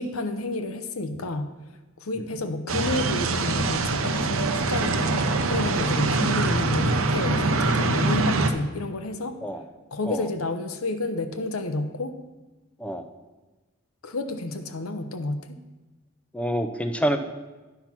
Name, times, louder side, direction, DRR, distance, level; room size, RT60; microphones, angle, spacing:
voice 1, 0.0-1.5 2.0-9.3 9.9-12.1 14.0-15.5, left 2 dB, 90° left, 9 dB, 0.8 m, -30 dB
sound 1, 2.7-8.5, right 3 dB, 75° right, 0.8 m, -24 dB
voice 2, 16.3-17.2, equal, 5° left, 7 dB, 0.6 m, -27 dB
10.5 x 5.8 x 5.9 m, 1.2 s
head